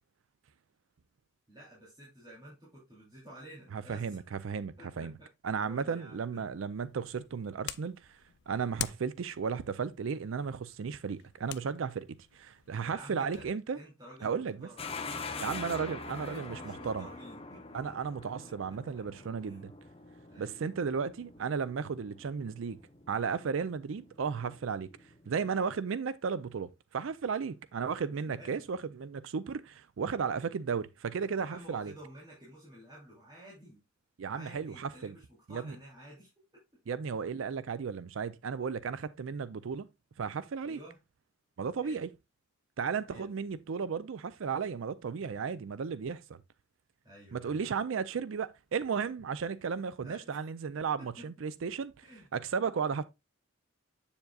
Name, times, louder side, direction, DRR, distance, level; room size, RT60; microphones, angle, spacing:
voice 1, 1.5-4.2 4.8-5.3 5.6-6.5 12.9-13.4 13.7-14.8 15.1-17.6 19.4-19.6 20.3-20.6 28.1-28.6 31.3-33.8 34.3-36.3 40.6-41.0 41.8-42.0 43.1-43.3 47.0-47.6 50.0-50.4 51.0-51.1 52.0-52.3, right 1 dB, 20° right, 3.1 m, -51 dB
voice 2, 3.7-5.1 5.4-8.0 8.5-12.1 12.3-13.8 14.2-14.7 15.4-16.6 16.8-17.1 17.7-19.7 20.4-22.8 23.1-24.9 25.3-31.9 34.2-35.1 35.5-35.8 36.9-39.8 40.2-40.8 41.6-42.1 42.8-46.4 47.3-51.9 52.3-53.0, right 6 dB, 70° right, 0.4 m, -34 dB
sound 1, 6.8-13.5, left 12 dB, 55° left, 0.3 m, -46 dB
sound 2, 14.8-25.5, left 4 dB, 30° left, 0.8 m, -45 dB
7.8 x 7.2 x 2.3 m
head